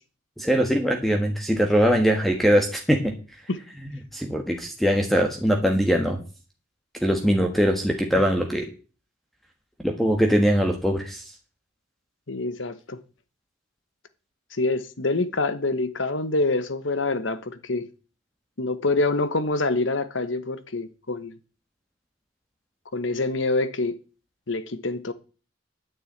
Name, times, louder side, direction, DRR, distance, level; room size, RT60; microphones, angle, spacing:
voice 1, 0.4-3.1 4.1-6.2 7.0-8.7 9.8-11.2, equal, ahead, 1.4 m, -21 dB
voice 2, 12.3-13.0 14.5-17.9 18.6-21.4 22.9-24.0 24.5-25.1, left 2 dB, 70° left, 1.2 m, -26 dB
9.5 x 6.9 x 8.5 m
head